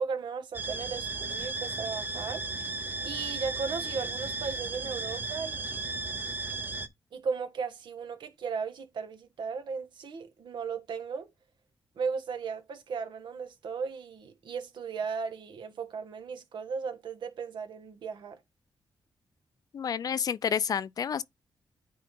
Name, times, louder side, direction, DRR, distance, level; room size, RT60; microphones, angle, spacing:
voice 1, 0.0-2.4 3.0-5.8 7.1-11.3 12.0-18.4, right 5 dB, 75° right, 1.5 m, -36 dB
sound 1, 0.5-6.9, right 3 dB, 25° right, 0.8 m, -35 dB
voice 2, 19.7-21.2, left 7 dB, 55° left, 0.4 m, -29 dB
9.4 x 3.7 x 3.8 m
cardioid pair, 110°, 8 cm